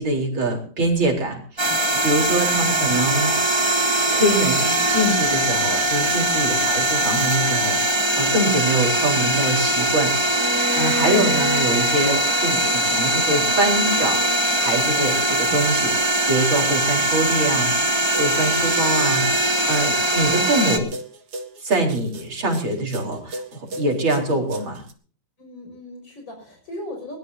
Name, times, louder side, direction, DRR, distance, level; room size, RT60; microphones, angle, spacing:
voice 1, 0.0-3.5 4.1-14.2 14.6-15.9 16.3-20.9 21.6-24.8, right 1 dB, 75° right, 2 dB, 5.0 m, -24 dB
sound 1, 1.6-20.8, right 1 dB, 15° right, 2.0 m, -21 dB
sound 2, 9.2-24.9, right 2 dB, 55° right, 2.1 m, -39 dB
Bowed string instrument, 10.3-15.3, right 2 dB, 35° right, 4.4 m, -31 dB
voice 2, 24.2-24.6 25.4-27.2, left 1 dB, 65° left, 2 dB, 6.4 m, -38 dB
21.0 x 20.0 x 2.8 m, 0.41 s
omnidirectional pair, 2.2 m